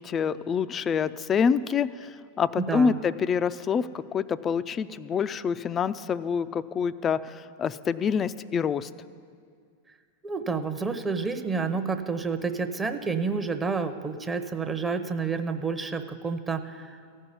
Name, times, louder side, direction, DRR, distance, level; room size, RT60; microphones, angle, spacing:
voice 1, 0.0-8.9, left 6 dB, 25° left, 14 dB, 0.4 m, -27 dB
voice 2, 2.6-3.0 10.2-17.0, right 4 dB, 15° right, 7 dB, 0.8 m, -29 dB
15.0 x 5.5 x 9.8 m, 2.2 s
hypercardioid pair, 110°, 0 cm